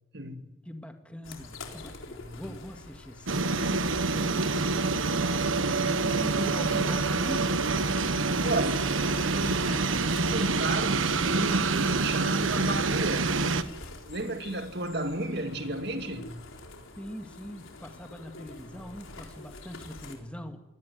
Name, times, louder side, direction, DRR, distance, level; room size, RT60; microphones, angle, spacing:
voice 1, 0.1-0.6 6.3-6.4 8.4-9.0 9.3-13.3 14.0-16.3, right 1 dB, 55° right, 2.3 m, -32 dB
voice 2, 0.7-3.5 4.1-5.0 5.9-7.8 17.0-20.6, equal, 5° left, 2.1 m, -41 dB
sound 1, 1.2-20.2, left 2 dB, 75° left, 4.1 m, -47 dB
sound 2, 3.3-13.6, right 3 dB, 75° right, 1.3 m, -27 dB
25.0 x 19.0 x 9.4 m
head